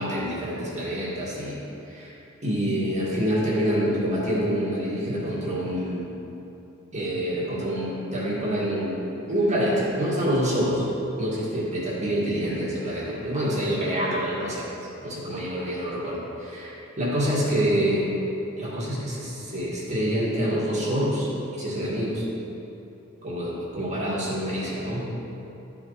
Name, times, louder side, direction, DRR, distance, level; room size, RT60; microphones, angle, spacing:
voice 1, 0.0-1.6 1.9-2.1 2.4-6.1 6.9-9.0 9.3-10.8 11.2-14.6 15.0-18.1 18.6-22.2 23.2-25.1, equal, 35° right, -7 dB, 2.0 m, -26 dB
12.5 x 5.0 x 4.0 m, 3.0 s
head